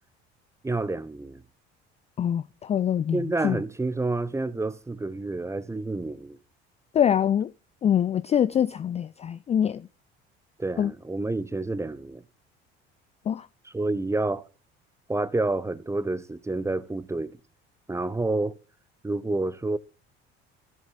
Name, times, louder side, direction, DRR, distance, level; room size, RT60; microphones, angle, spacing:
voice 1, 0.6-1.4 3.1-6.4 10.6-12.2 13.7-14.4 15.1-17.3 17.9-18.6 19.0-19.8, right 2 dB, 10° right, 0.7 m, -29 dB
voice 2, 2.2-3.6 6.9-7.5 7.8-9.9 10.8-10.9 13.3-13.5, left 9 dB, 20° left, 0.4 m, -24 dB
16.5 x 7.3 x 2.6 m
figure-of-eight pair, 60°, 32 cm